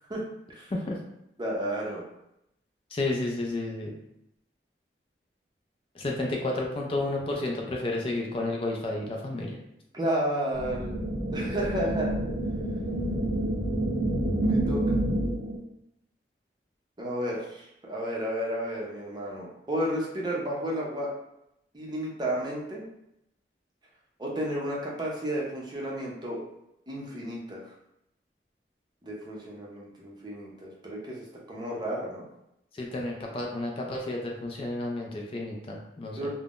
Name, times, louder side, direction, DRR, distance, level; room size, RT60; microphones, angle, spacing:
voice 1, 1.4-2.0 9.9-10.9 11.3-12.2 14.4-15.0 17.0-21.1 21.7-22.8 24.2-26.4 26.9-27.6 29.0-32.3 36.2-36.3, right 1 dB, 25° right, -3 dB, 0.5 m, -32 dB
voice 2, 2.9-3.9 6.0-9.6 32.7-36.3, left 2 dB, 30° left, -1 dB, 0.3 m, -31 dB
sound 1, 10.5-15.6, right 1 dB, 70° right, 0.7 m, -28 dB
3.5 x 2.0 x 2.4 m, 0.82 s
head